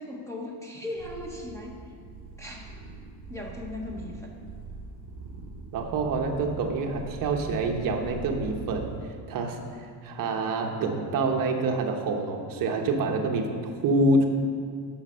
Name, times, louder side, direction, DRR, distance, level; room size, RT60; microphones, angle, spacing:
voice 1, 0.0-1.9 2.4-2.8 3.3-4.4, left 1 dB, 5° left, -1 dB, 0.8 m, -38 dB
sound 1, 1.0-9.0, right 3 dB, 70° right, 3.1 m, -42 dB
voice 2, 5.7-8.9 9.3-14.3, right 2 dB, 45° right, 2 dB, 1.1 m, -27 dB
11.5 x 6.4 x 6.3 m, 2.2 s
cardioid pair, 175°, 45 cm